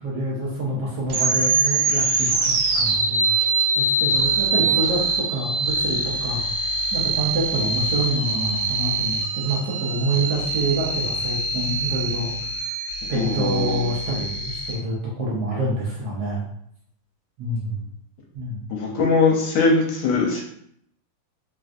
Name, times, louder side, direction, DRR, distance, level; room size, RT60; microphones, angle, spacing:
voice 1, 0.0-3.3 3.7-6.4 6.9-12.6 13.1-16.4 17.4-17.8 18.3-18.6, right 1 dB, 70° right, -5 dB, 1.0 m, -27 dB
sound 1, 1.1-14.7, right 3 dB, 85° right, 1.5 m, -24 dB
voice 2, 13.1-13.9 18.7-20.4, left 4 dB, 75° left, -1 dB, 1.3 m, -21 dB
3.4 x 2.5 x 2.4 m, 0.69 s
omnidirectional pair, 2.3 m